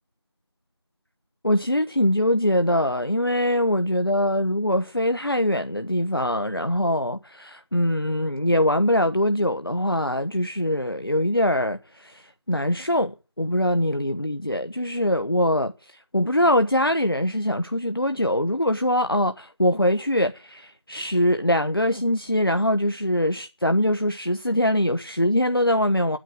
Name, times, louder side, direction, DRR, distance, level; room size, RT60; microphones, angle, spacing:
voice 1, 1.4-26.2, left 1 dB, 55° left, 1.1 m, -23 dB
9.9 x 9.0 x 9.0 m
figure-of-eight pair, 180°, 14 cm